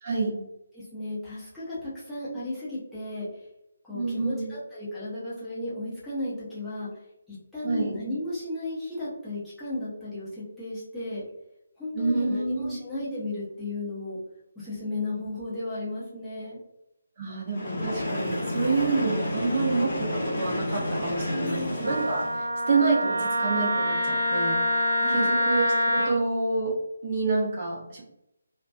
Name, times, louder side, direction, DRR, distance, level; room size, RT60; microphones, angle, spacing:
voice 1, 0.0-0.4 3.9-4.5 7.6-7.9 11.9-12.7 17.2-28.0, right 3 dB, 35° right, -3 dB, 0.7 m, -28 dB
voice 2, 0.7-3.5 3.8-6.9 7.3-11.2 11.8-14.2 14.6-16.6 21.3-21.9 25.0-25.3, left 2 dB, ahead, -13 dB, 0.7 m, -34 dB
Train, 17.5-22.5, left 1 dB, 40° left, 0.8 m, -30 dB
Wind instrument woodwind instrument, 21.8-26.1, equal, 80° right, 0.5 m, -25 dB
2.5 x 2.2 x 2.2 m, 0.83 s
figure-of-eight pair, 145°, 0 cm